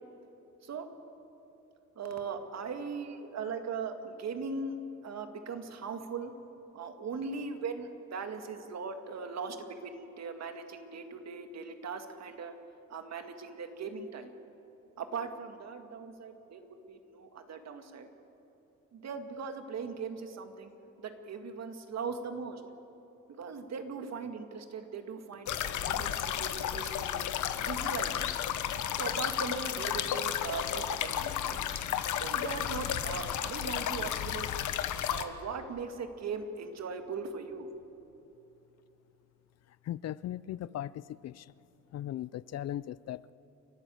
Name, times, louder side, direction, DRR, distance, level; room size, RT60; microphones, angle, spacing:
voice 1, 2.0-4.8 5.0-6.3 6.7-12.6 12.9-14.3 15.0-18.1 18.9-20.7 21.0-22.6 23.4-27.3 27.6-28.1 28.9-31.6 32.2-34.6 35.1-37.7, right 5 dB, 60° right, 7 dB, 2.1 m, -39 dB
sound 1, 25.5-35.2, left 10 dB, 75° left, 1.2 m, -33 dB
voice 2, 39.9-41.5 41.9-43.3, left 12 dB, 60° left, 20 dB, 0.5 m, -38 dB
30.0 x 12.0 x 7.8 m, 3.0 s
cardioid pair, 90°, 30 cm